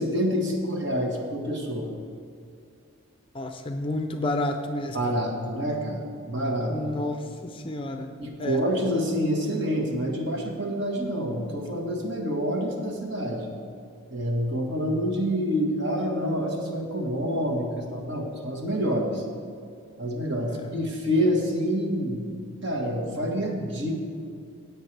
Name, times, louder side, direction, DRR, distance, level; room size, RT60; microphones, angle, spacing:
voice 1, 0.0-1.9 4.9-6.0 6.3-6.7 8.2-13.5 14.1-19.2 20.0-22.2 22.6-23.9, equal, 55° right, 1 dB, 1.5 m, -27 dB
voice 2, 3.3-5.0 6.7-8.1 8.4-8.6 20.5-20.6, left 1 dB, 25° left, 6 dB, 0.5 m, -30 dB
16.0 x 8.3 x 3.3 m, 2.3 s
head